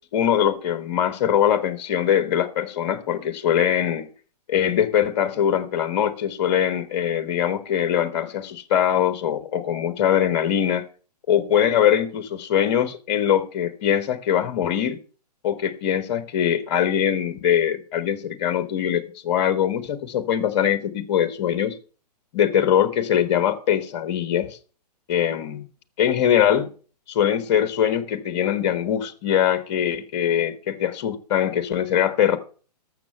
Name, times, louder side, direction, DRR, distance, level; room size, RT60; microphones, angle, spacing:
voice 1, 0.1-4.1 4.5-10.8 11.3-15.0 15.4-21.8 22.3-24.6 25.1-25.7 26.0-26.7 27.1-32.4, left 9 dB, 40° left, 1.3 m, -22 dB
13.5 x 6.8 x 5.5 m
hypercardioid pair, 130°, 21 cm